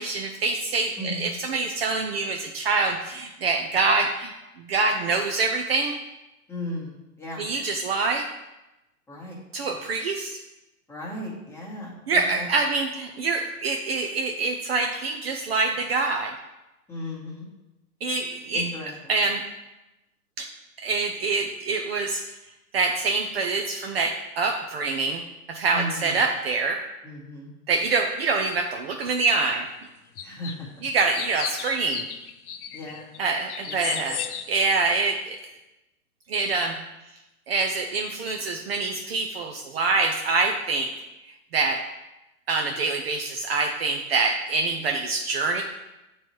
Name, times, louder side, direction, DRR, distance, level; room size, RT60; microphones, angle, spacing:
voice 1, 0.0-5.9 7.4-8.3 9.5-10.4 12.1-16.3 18.0-18.7 19.1-19.4 20.4-20.5 20.8-22.2 22.7-25.2 25.5-26.8 27.7-29.7 30.8-32.1 33.2-34.2 34.5-35.4 36.3-36.8 37.5-40.9 41.5-41.8 42.5-45.6, right 3 dB, 45° right, 2 dB, 0.5 m, -25 dB
voice 2, 1.0-1.3 6.5-7.4 9.1-9.4 10.9-12.5 16.9-17.5 18.5-18.9 25.7-26.2 27.0-27.5 30.2-30.7 32.7-33.1 33.7-34.0, left 1 dB, 5° left, -6 dB, 1.3 m, -36 dB
sound 1, 30.2-30.5 30.9-34.8, left 8 dB, 75° left, 0.7 m, -34 dB
7.6 x 3.1 x 4.5 m, 0.97 s
hypercardioid pair, 140°, 45 cm